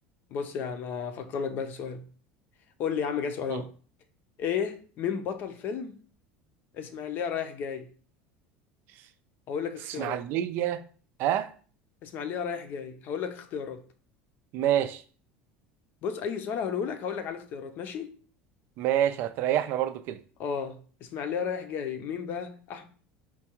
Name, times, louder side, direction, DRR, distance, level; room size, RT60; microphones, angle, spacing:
voice 1, 0.3-2.0 2.8-3.7 4.4-6.0 6.7-7.9 9.5-10.2 12.0-13.8 16.0-18.2 20.4-22.8, left 7 dB, 50° left, 0.5 m, -33 dB
voice 2, 10.0-10.8 11.2-11.5 14.5-15.0 18.8-20.2, right 11 dB, 55° right, 0.3 m, -27 dB
4.5 x 2.2 x 2.9 m
supercardioid pair, 135°, 4 cm